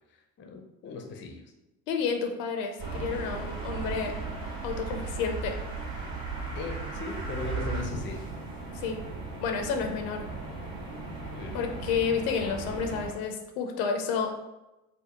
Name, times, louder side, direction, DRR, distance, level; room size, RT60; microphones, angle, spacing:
voice 1, 0.1-1.5 6.5-8.3 11.3-11.6, left 3 dB, 25° left, 3 dB, 0.5 m, -38 dB
voice 2, 1.9-4.1 4.6-5.6 8.7-9.0 9.4-10.2 11.5-14.3, left 6 dB, 65° left, 4 dB, 0.6 m, -30 dB
sound 1, 2.8-13.1, right 3 dB, 45° right, 1.4 m, -36 dB
4.9 x 2.1 x 2.9 m, 0.99 s
figure-of-eight pair, 50°, 47 cm